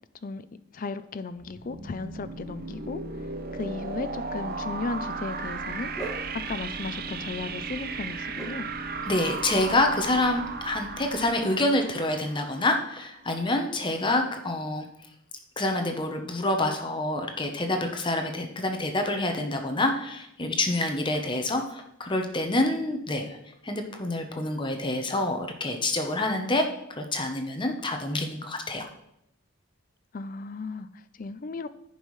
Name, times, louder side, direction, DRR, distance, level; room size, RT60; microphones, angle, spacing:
voice 1, 0.7-3.0 3.5-5.9 6.5-8.7 30.1-31.7, left 3 dB, 40° left, 13 dB, 0.4 m, -35 dB
sound 1, 1.4-13.1, right 4 dB, 45° right, 0.6 m, -35 dB
Dog, 5.4-11.3, right 2 dB, ahead, 1.9 m, -45 dB
voice 2, 9.1-14.9 15.6-23.3 23.6-28.9, left 2 dB, 20° left, 4 dB, 0.8 m, -27 dB
14.5 x 5.5 x 3.2 m, 0.81 s
head